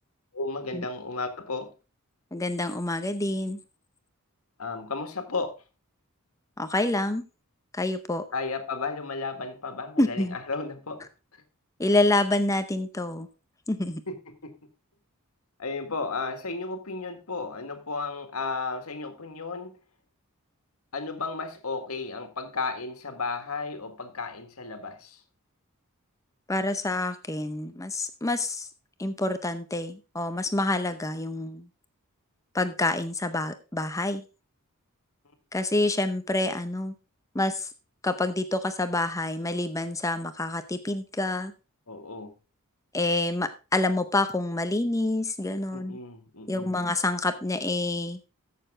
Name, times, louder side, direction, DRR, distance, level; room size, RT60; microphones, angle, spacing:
voice 1, 0.3-1.7 4.6-5.5 8.3-11.1 14.1-14.5 15.6-19.8 20.9-25.2 41.9-42.3 45.7-46.8, left 3 dB, 75° left, 1.8 m, -34 dB
voice 2, 2.3-3.6 6.6-7.2 7.7-8.2 10.0-10.3 11.8-13.3 13.7-14.0 26.5-28.7 29.0-31.7 32.5-34.2 35.5-36.9 37.3-37.7 38.0-41.5 42.9-46.0 46.5-48.2, left 2 dB, 15° left, 0.6 m, -27 dB
14.5 x 6.8 x 3.6 m
head